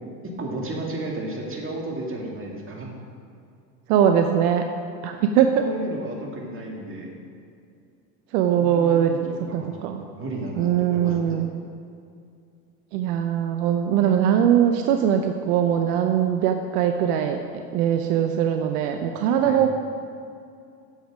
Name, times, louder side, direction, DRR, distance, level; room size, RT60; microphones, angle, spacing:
voice 1, 0.4-2.9 5.6-7.1 8.6-9.7 10.2-11.4 19.4-19.6, right 2 dB, 25° right, -1 dB, 2.1 m, -33 dB
voice 2, 3.9-4.7 5.0-5.6 8.3-10.0 10.6-11.5 12.9-17.4 17.7-19.7, right 9 dB, 70° right, 6 dB, 0.8 m, -21 dB
9.4 x 7.3 x 5.1 m, 2.4 s
hypercardioid pair, 95°, 48 cm